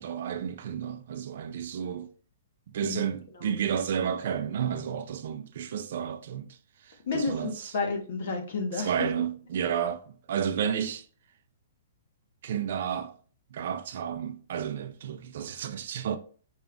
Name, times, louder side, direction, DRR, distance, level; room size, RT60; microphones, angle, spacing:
voice 1, 0.0-2.1 2.7-7.7 8.7-11.1 12.4-13.2 13.5-16.2, right 8 dB, 45° right, 0.4 m, -32 dB
voice 2, 7.1-8.9, left 4 dB, 50° left, 0.9 m, -31 dB
5.0 x 2.4 x 3.5 m
hypercardioid pair, 180°, 0 cm